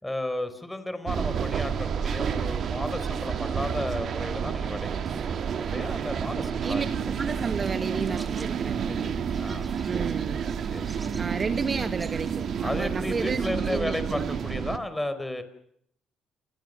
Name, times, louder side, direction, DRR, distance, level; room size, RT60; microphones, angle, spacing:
voice 1, 0.0-6.8 8.9-10.0 10.7-11.1 12.6-15.4, left 1 dB, 10° left, 11 dB, 4.7 m, -34 dB
sound 1, 1.1-14.8, right 7 dB, 55° right, 2.0 m, -30 dB
sound 2, 7.0-13.5, right 2 dB, 15° right, 2.5 m, -47 dB
voice 2, 7.2-8.7 9.8-10.4 11.2-14.3, right 4 dB, 30° right, 9 dB, 1.4 m, -32 dB
29.0 x 22.0 x 6.8 m, 0.71 s
cardioid pair, 100°, 0 cm